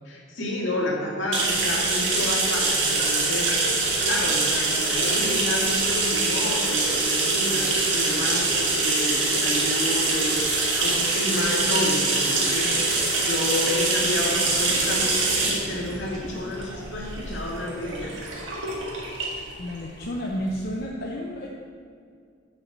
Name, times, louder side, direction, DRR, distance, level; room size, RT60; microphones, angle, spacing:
voice 1, 0.1-3.6 4.0-12.7 13.3-18.1, left 1 dB, 75° left, -2 dB, 1.9 m, -30 dB
sound 1, 1.3-20.7, right 3 dB, 75° right, 1.7 m, -24 dB
voice 2, 19.6-21.5, equal, 50° left, -1 dB, 0.7 m, -31 dB
6.7 x 5.7 x 7.0 m, 2.2 s
head